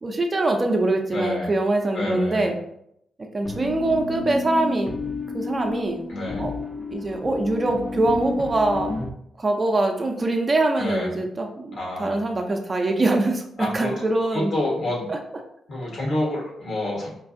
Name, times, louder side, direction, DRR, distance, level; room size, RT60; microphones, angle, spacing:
voice 1, 0.0-2.6 3.3-4.9 5.3-6.0 6.4-6.5 6.9-8.9 9.4-14.5 15.1-15.2, right 2 dB, 40° right, 3 dB, 0.6 m, -23 dB
voice 2, 1.1-1.5 1.9-2.5 6.1-6.4 10.8-11.1 11.8-12.3 13.6-13.9 14.3-15.1 15.7-17.1, left 1 dB, 65° left, -3 dB, 1.4 m, -28 dB
sound 1, 3.4-9.1, left 2 dB, 35° left, 0.5 m, -31 dB
4.5 x 2.3 x 2.6 m, 0.74 s
hypercardioid pair, 40°, 0 cm